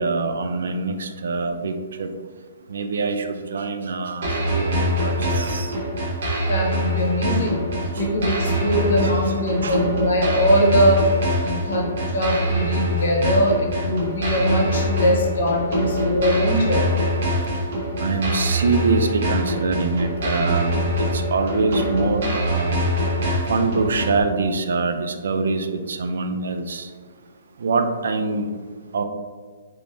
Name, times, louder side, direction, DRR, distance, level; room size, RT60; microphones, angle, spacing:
voice 1, 0.0-2.1 2.7-5.8 9.0-9.3 9.6-9.8 18.0-22.8 23.5-26.9 27.6-28.5 28.9-29.0, right 4 dB, 65° right, 7 dB, 0.3 m, -24 dB
sound 1, 4.2-24.2, equal, 45° right, 0.8 m, -24 dB
voice 2, 6.5-7.6 7.9-11.0 11.4-11.9 12.1-16.9, equal, 55° left, 0 dB, 0.8 m, -21 dB
3.6 x 3.0 x 2.5 m, 1.5 s
hypercardioid pair, 180°, 0 cm